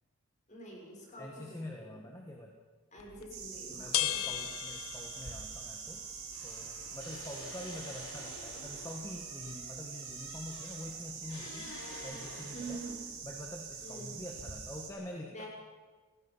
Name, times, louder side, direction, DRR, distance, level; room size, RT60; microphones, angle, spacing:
voice 1, 0.5-2.1 2.9-4.5 12.5-13.1 13.8-14.2 15.3-15.5, right 2 dB, 35° left, -2 dB, 6.6 m, -46 dB
voice 2, 1.2-2.6 3.7-6.0 6.4-11.7 12.0-12.8 13.2-15.4, left 1 dB, 15° left, 1 dB, 1.6 m, -45 dB
sound 1, 3.0-14.4, left 11 dB, 85° left, 1.0 m, -43 dB
sound 2, 3.3-14.9, right 6 dB, 50° right, 6.6 m, -45 dB
sound 3, 5.1-6.1 6.3-13.2 13.9-14.5, left 2 dB, 65° left, 4.3 m, -50 dB
30.0 x 17.5 x 5.7 m, 1.4 s
head